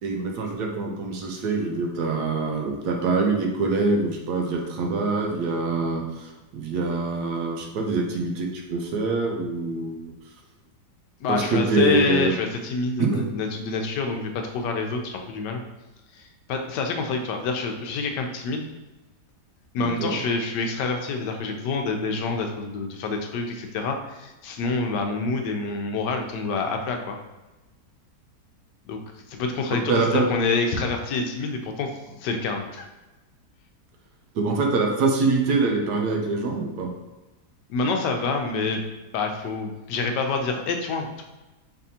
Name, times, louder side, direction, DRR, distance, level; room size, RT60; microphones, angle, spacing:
voice 1, 0.0-10.0 11.3-12.3 13.0-13.3 19.8-20.2 29.7-30.3 34.3-36.9, right 3 dB, 70° right, 1 dB, 1.2 m, -24 dB
voice 2, 11.2-15.6 16.1-18.7 19.7-27.2 28.8-29.0 29.3-31.9 32.2-32.9 37.7-38.9 39.1-41.2, left 4 dB, 80° left, 3 dB, 1.2 m, -27 dB
4.2 x 3.5 x 2.7 m, 1.1 s
omnidirectional pair, 1.8 m